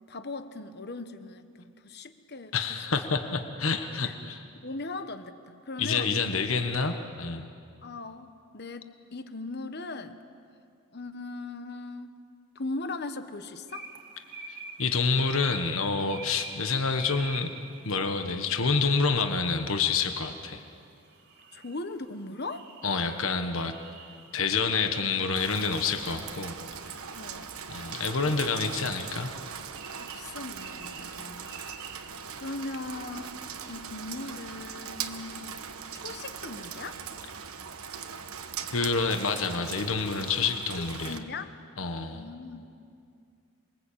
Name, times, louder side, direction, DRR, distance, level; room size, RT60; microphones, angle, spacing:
voice 1, 0.1-2.8 4.0-4.1 4.6-6.1 7.8-8.3 8.5-10.2 10.9-12.2 12.5-13.9 21.5-22.7 27.1-27.5 30.0-31.5 32.4-33.3 33.7-35.4 35.9-37.0 40.4-40.5 40.8-41.5 42.1-42.7, left 3 dB, 45° left, 10 dB, 1.2 m, -39 dB
voice 2, 2.5-4.4 5.8-7.5 14.5-17.5 17.8-20.6 22.8-23.7 24.3-26.5 27.7-29.3 38.7-41.2 41.8-42.2, left 4 dB, 65° left, 6 dB, 1.4 m, -28 dB
sound 1, 13.7-32.7, right 4 dB, 45° right, 2.0 m, -48 dB
Rain, 25.3-41.2, right 7 dB, 75° right, 1.3 m, -40 dB
28.0 x 22.0 x 8.6 m, 2.4 s
head